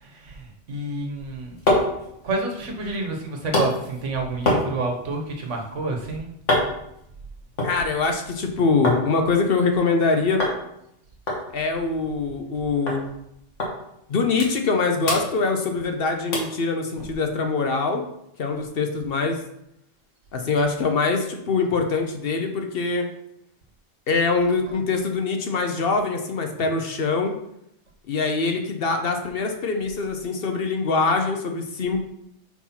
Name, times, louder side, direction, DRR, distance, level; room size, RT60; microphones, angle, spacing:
voice 1, 0.7-1.6 2.2-6.3, right 2 dB, 80° right, 2 dB, 1.5 m, -28 dB
sound 1, 1.1-9.0 9.4-10.0 10.4-10.6 10.9-11.0 11.3-12.6 12.9-13.0 13.6-13.7 14.1-14.8 15.0-15.9 16.3-16.6 17.1-17.2, left 1 dB, 80° left, 1.9 m, -27 dB
voice 2, 7.6-10.4 11.5-13.1 14.1-18.0 18.4-19.4 20.3-23.1 24.1-27.3 28.1-32.0, left 4 dB, 55° left, 4 dB, 0.9 m, -23 dB
4.6 x 4.2 x 5.7 m, 0.78 s
omnidirectional pair, 1.2 m